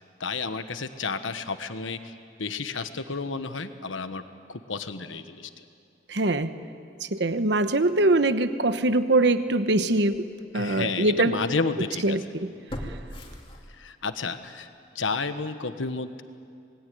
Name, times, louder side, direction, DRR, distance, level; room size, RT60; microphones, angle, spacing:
voice 1, 0.2-4.2 4.5-5.6 10.5-12.2 13.8-14.7 14.9-16.2, left 4 dB, 90° left, 9 dB, 1.3 m, -31 dB
voice 2, 6.1-6.5 7.1-10.3 10.5-11.4 12.0-12.5, right 2 dB, 60° right, 10 dB, 1.1 m, -23 dB
sound 1, 9.4-9.5 10.1-10.2 12.7-14.1 14.5-14.6, equal, 25° left, 2.6 m, -38 dB
27.0 x 21.0 x 9.5 m, 2.4 s
head